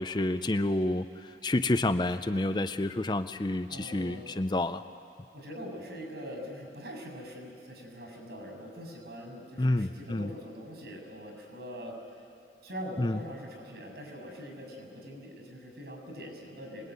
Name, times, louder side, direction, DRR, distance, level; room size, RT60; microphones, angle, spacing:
voice 1, 0.0-4.8 9.6-10.3 13.0-13.2, left 1 dB, 25° left, 10 dB, 0.5 m, -29 dB
voice 2, 3.7-4.3 5.3-12.0 12.6-16.9, equal, 65° right, 3 dB, 6.8 m, -43 dB
25.0 x 20.5 x 9.5 m, 2.4 s
head